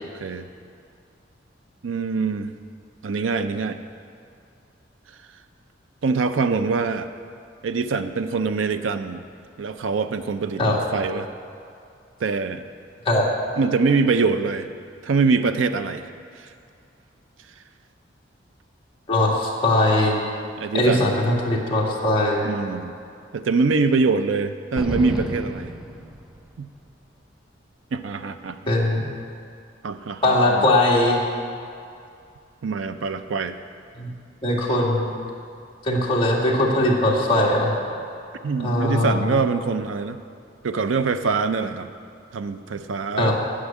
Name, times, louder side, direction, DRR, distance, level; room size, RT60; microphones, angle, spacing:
voice 1, 1.8-2.5 3.0-3.8 6.0-7.1 7.6-9.2 9.6-11.3 12.2-12.6 13.6-14.7 15.0-16.0 16.4-16.5 20.6-21.2 22.4-22.9 23.3-25.7 26.6-26.7 27.9-28.7 29.8-30.7 32.6-33.6 38.4-40.2 40.6-41.9 42.3-43.3, right 4 dB, 80° right, 10 dB, 0.5 m, -24 dB
voice 2, 19.1-20.2 20.7-22.5 28.7-29.0 30.2-31.2 34.0-34.1 34.4-35.1 35.8-37.7 38.6-39.4 43.2-43.3, left 1 dB, 30° left, -4 dB, 1.9 m, -20 dB
sound 1, 24.8-26.7, equal, 5° right, 0.6 m, -31 dB
9.8 x 6.3 x 8.4 m, 2.4 s
head